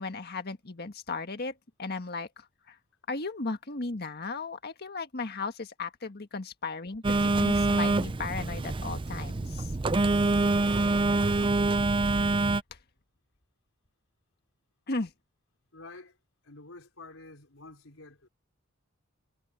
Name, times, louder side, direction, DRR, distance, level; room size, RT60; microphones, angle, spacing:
voice 1, 0.0-1.5 1.8-2.8 3.1-9.7 14.9-15.1, left 3 dB, 50° left, 1.7 m, -36 dB
Telephone, 7.0-12.6, right 2 dB, 25° right, 0.5 m, -26 dB
voice 2, 15.7-16.2 16.4-18.3, left 3 dB, 85° left, 4.0 m, -49 dB
head